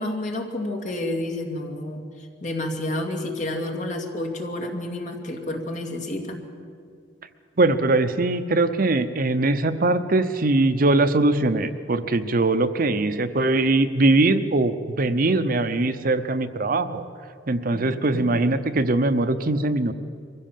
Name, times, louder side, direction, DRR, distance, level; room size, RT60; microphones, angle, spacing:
voice 1, 0.0-6.4 17.7-18.6, left 1 dB, 45° left, 2 dB, 2.4 m, -30 dB
voice 2, 7.6-17.0 17.5-19.9, right 2 dB, 50° right, 10 dB, 0.8 m, -21 dB
23.5 x 15.5 x 7.5 m, 2.2 s
head